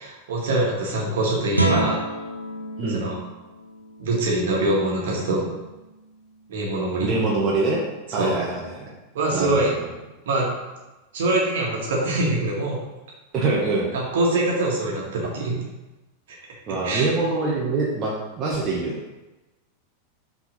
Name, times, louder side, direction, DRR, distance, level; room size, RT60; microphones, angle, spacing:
voice 1, 0.0-2.0 2.9-3.2 4.0-5.5 6.5-7.1 8.2-8.4 9.1-9.7 10.3-10.5 11.1-12.8 13.9-15.6 16.8-17.1, right 2 dB, 60° right, -3 dB, 1.8 m, -23 dB
Guitar, 1.5-7.1, right 2 dB, 85° right, 0.8 m, -31 dB
voice 2, 7.0-7.8 8.1-8.9 9.3-9.9 13.3-13.9 16.7-19.0, right 3 dB, 30° right, -4 dB, 1.3 m, -24 dB
5.9 x 4.0 x 5.3 m, 1.1 s
figure-of-eight pair, 90°, 0 cm